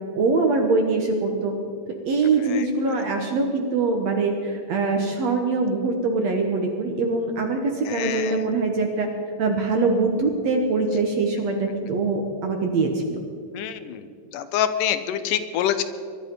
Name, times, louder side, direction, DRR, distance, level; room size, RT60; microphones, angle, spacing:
voice 1, 0.1-1.5 2.1-9.1 9.4-13.2, right 3 dB, 60° right, 3 dB, 2.0 m, -23 dB
voice 2, 7.9-8.4 13.5-14.0 14.3-15.8, left 10 dB, 75° left, 11 dB, 2.3 m, -26 dB
23.0 x 11.5 x 5.4 m, 2.4 s
omnidirectional pair, 4.1 m